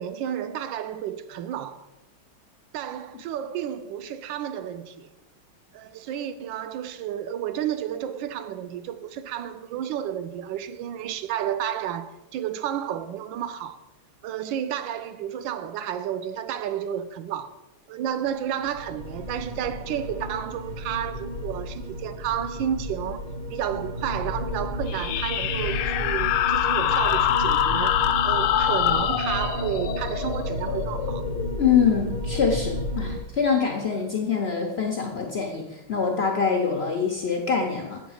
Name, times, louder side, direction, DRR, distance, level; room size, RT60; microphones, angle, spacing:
voice 1, 0.0-1.9 2.7-5.1 5.7-13.8 14.2-17.5 17.9-23.2 23.5-31.2, right 10 dB, 75° right, 1.2 m, -31 dB
sound 1, 18.6-33.2, left 1 dB, 40° right, 0.5 m, -32 dB
sound 2, 24.9-32.1, left 10 dB, 85° left, 1.4 m, -25 dB
voice 2, 31.6-38.0, left 6 dB, 70° left, 0.6 m, -24 dB
7.9 x 5.1 x 6.3 m
omnidirectional pair, 2.3 m